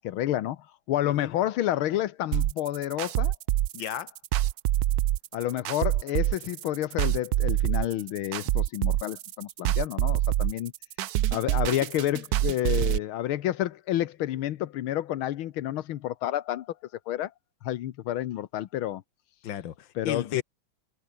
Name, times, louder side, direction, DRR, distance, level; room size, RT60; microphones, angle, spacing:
voice 1, 0.0-3.4 5.3-10.7 11.3-16.8 17.1-17.3 17.6-19.0 20.0-20.4, left 13 dB, 85° left, 1.7 m, -29 dB
voice 2, 1.1-1.4 3.7-4.2 19.4-20.4, left 10 dB, 65° left, 1.9 m, -34 dB
sound 1, 2.3-13.0, right 14 dB, 75° right, 0.8 m, -26 dB
omnidirectional pair, 2.3 m